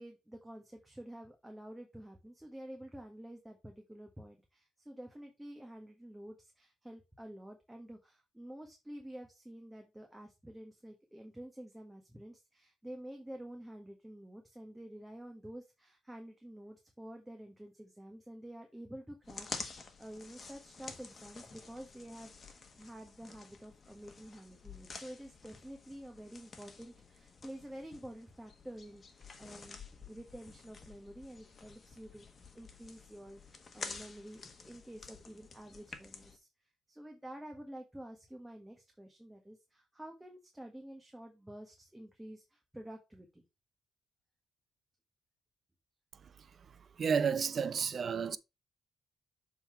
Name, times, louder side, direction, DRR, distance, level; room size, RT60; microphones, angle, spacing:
voice 1, 0.0-43.4, right 1 dB, 5° right, 1.4 m, -49 dB
sound 1, 19.2-36.4, left 4 dB, 35° left, 1.4 m, -50 dB
voice 2, 47.0-48.4, right 6 dB, 50° right, 0.6 m, -31 dB
6.9 x 3.8 x 4.5 m
cardioid pair, 90°, 0 cm